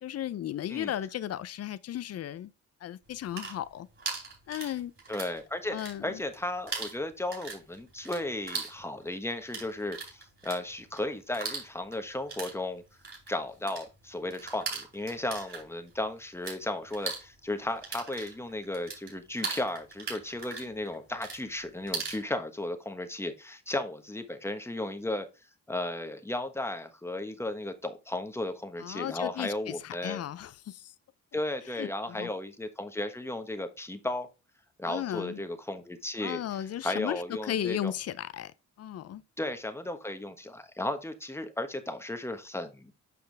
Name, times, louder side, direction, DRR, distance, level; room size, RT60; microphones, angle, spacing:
voice 1, 0.0-2.5 2.8-3.9 4.5-4.9 5.7-6.2 28.8-30.9 31.8-32.3 34.9-35.4 36.2-38.5 38.8-39.2, left 11 dB, 55° left, 0.6 m, -35 dB
sound 1, 3.1-5.4 5.7-6.4 6.7-16.6 16.9-22.2, right 4 dB, 40° right, 4.4 m, -39 dB
voice 2, 5.1-12.8 13.3-25.3 25.7-30.2 31.3-34.3 34.8-37.9 39.4-42.9, left 1 dB, 10° left, 1.2 m, -35 dB
7.7 x 5.6 x 3.4 m
cardioid pair, 90°, 30 cm